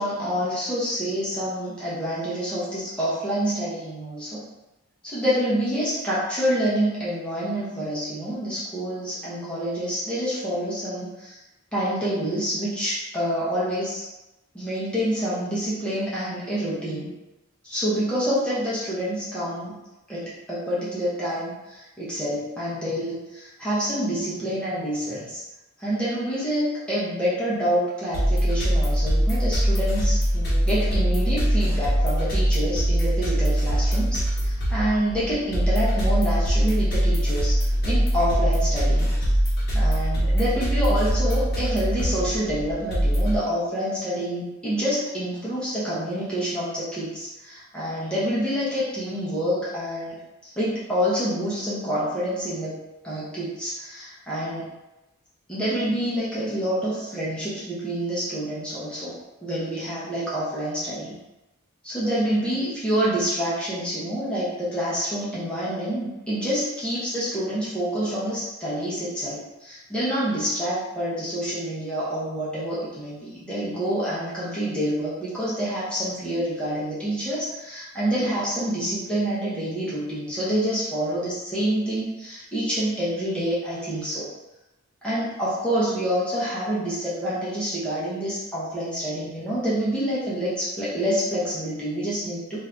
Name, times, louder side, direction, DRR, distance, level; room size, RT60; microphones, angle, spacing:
voice 1, 0.0-4.4 5.0-11.4 11.7-14.1 14.5-17.1 17.6-19.7 20.1-25.4 25.8-39.3 39.7-50.2 50.6-52.8 53.0-54.7 55.5-59.2 59.4-61.1 61.8-84.3 85.0-92.6, equal, 5° left, -9 dB, 0.7 m, -27 dB
sound 1, 28.1-43.4, equal, 45° left, 0.9 m, -22 dB
2.6 x 2.5 x 3.3 m, 0.99 s
head